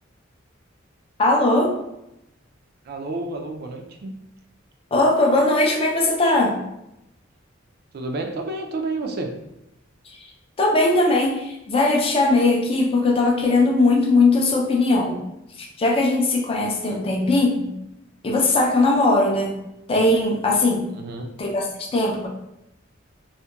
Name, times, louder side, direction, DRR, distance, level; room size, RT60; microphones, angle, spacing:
voice 1, 1.2-1.8 4.9-6.6 10.6-15.2 15.6-17.7 18.2-19.6 19.9-20.9 21.4-22.3, left 2 dB, 30° left, 0 dB, 0.4 m, -19 dB
voice 2, 2.8-4.1 7.9-9.3 16.8-17.0 20.9-21.3, right 2 dB, 50° right, 3 dB, 0.3 m, -30 dB
2.7 x 2.1 x 2.3 m, 0.88 s
head